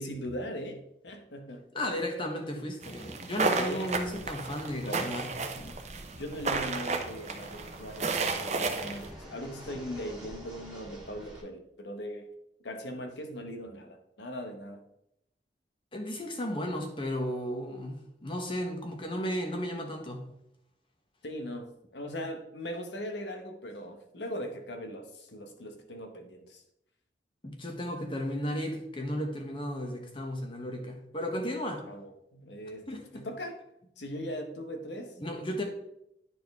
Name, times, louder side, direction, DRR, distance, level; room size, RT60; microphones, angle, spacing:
voice 1, 0.0-1.6 3.6-3.9 4.8-5.2 6.2-12.3 12.6-14.8 21.2-26.6 31.8-33.6 34.0-35.2, equal, 85° left, 1.0 m, -39 dB
voice 2, 1.7-5.7 15.9-20.3 27.4-31.8 32.9-33.2 35.2-35.6, equal, 30° left, 1.0 m, -34 dB
sound 1, 2.8-9.1, right 4 dB, 40° right, 0.7 m, -33 dB
Fixed-wing aircraft airplane, 4.0-11.4, equal, 5° right, 1.7 m, -49 dB
10.0 x 4.4 x 3.5 m
head